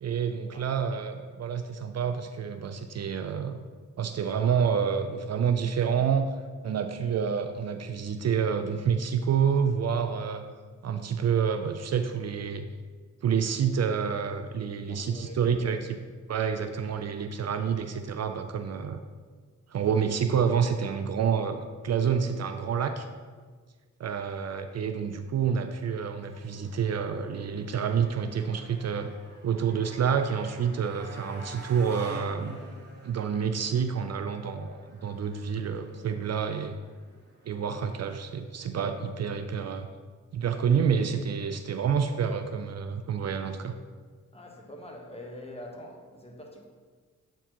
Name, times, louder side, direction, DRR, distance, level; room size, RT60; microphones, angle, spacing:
voice 1, 0.0-3.6 4.0-6.3 6.6-10.4 10.8-12.7 13.2-16.0 16.3-19.0 19.7-23.1 24.0-29.1 29.4-32.6 33.0-36.7 37.5-39.9 40.3-43.7, right 7 dB, 55° right, 8 dB, 0.4 m, -28 dB
voice 2, 0.5-0.8 14.9-15.8 44.3-46.7, left 1 dB, 20° left, 0 dB, 1.2 m, -45 dB
Motorcycle, 25.8-38.0, right 1 dB, 35° right, 1.2 m, -49 dB
8.0 x 4.5 x 2.9 m, 1.5 s
cardioid pair, 65°, 31 cm